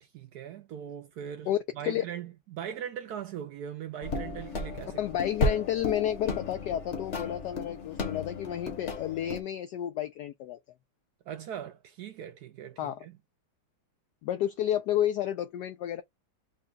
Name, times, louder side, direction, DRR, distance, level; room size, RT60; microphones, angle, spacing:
voice 1, 0.0-1.5 1.8-5.0 11.3-13.2, right 9 dB, 75° right, 0.9 m, -40 dB
sound 1, 4.0-9.4, left 2 dB, 45° left, 1.1 m, -34 dB
voice 2, 5.0-10.6 12.8-13.1 14.2-16.0, left 11 dB, 75° left, 1.0 m, -31 dB
3.9 x 2.3 x 3.8 m
omnidirectional pair, 2.2 m